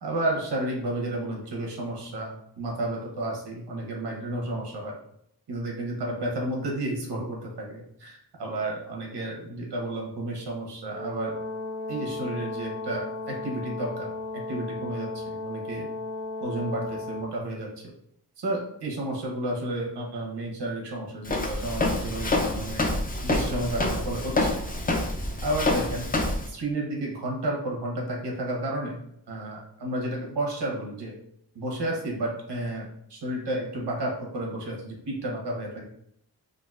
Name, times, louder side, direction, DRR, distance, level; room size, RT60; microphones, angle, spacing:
voice 1, 0.0-4.9 5.5-11.4 11.9-14.1 14.3-15.9 16.4-17.7 18.4-22.8 23.2-24.6 25.4-26.1 26.5-29.0 29.3-31.1 31.5-35.8, right 1 dB, 85° right, -1 dB, 1.1 m, -31 dB
Brass instrument, 10.9-17.3, left 2 dB, 25° right, 0.6 m, -35 dB
Walk footsteps, 21.3-26.5, left 2 dB, 20° left, 0.4 m, -27 dB
3.9 x 2.6 x 2.4 m, 0.71 s
wide cardioid pair, 110°, 40 cm